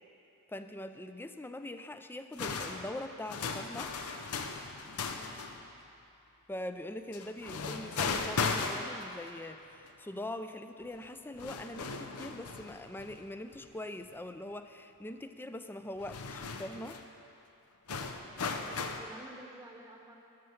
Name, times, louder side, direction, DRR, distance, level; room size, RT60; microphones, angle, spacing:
voice 1, 0.5-3.9 6.5-17.0, left 1 dB, 10° left, 9 dB, 0.4 m, -42 dB
sound 1, 2.3-5.6 7.1-9.3 9.9-10.0 11.0-11.1 11.4-13.7 14.0-14.1 16.0-17.1 17.9-19.0, left 4 dB, 80° left, 0.7 m, -37 dB
voice 2, 5.1-5.5 18.5-20.2, right 1 dB, 15° right, 1 dB, 0.9 m, -51 dB
12.5 x 6.4 x 7.1 m, 2.8 s
head